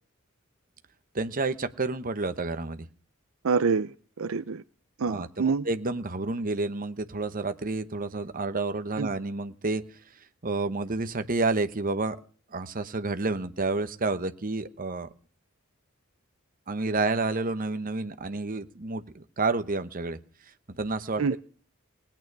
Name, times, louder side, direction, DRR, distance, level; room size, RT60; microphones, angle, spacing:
voice 1, 1.1-2.9 5.1-9.8 10.4-12.2 12.5-15.1 16.7-20.2 20.7-21.4, right 3 dB, 40° right, 10 dB, 1.1 m, -30 dB
voice 2, 3.4-4.6 5.0-5.7 9.0-9.1 21.2-21.4, right 5 dB, 70° right, 12 dB, 0.6 m, -26 dB
20.0 x 9.1 x 4.7 m, 0.43 s
head